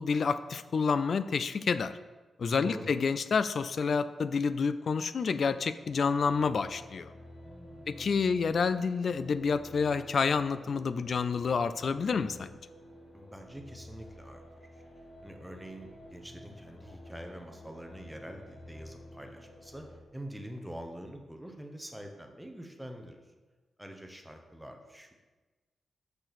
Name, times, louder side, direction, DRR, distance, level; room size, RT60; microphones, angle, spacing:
voice 1, 0.0-1.9 2.4-7.1 7.9-12.6, left 5 dB, 55° left, 13 dB, 0.3 m, -29 dB
voice 2, 2.4-2.9 7.4-8.3 13.1-14.7 15.2-19.8 20.1-23.2 23.8-25.1, equal, 5° right, 4 dB, 0.8 m, -45 dB
sound 1, 5.8-20.0, left 1 dB, 80° left, 1.6 m, -51 dB
6.6 x 6.1 x 4.1 m, 1.3 s
wide cardioid pair, 130°, 0 cm